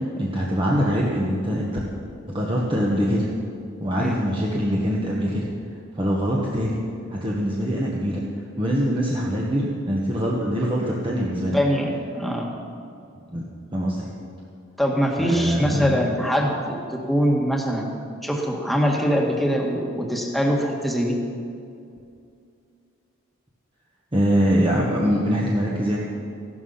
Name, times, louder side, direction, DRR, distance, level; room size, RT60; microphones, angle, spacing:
voice 1, 0.0-1.8 2.3-3.3 3.8-5.5 5.9-6.8 7.1-8.2 8.6-11.5 13.3-13.4 13.7-14.1 15.2-16.0 24.1-26.0, equal, 25° right, -4 dB, 1.4 m, -23 dB
voice 2, 11.5-12.5 14.8-17.9 18.2-21.2, equal, ahead, 0 dB, 1.7 m, -23 dB
15.0 x 12.0 x 5.7 m, 2.5 s
head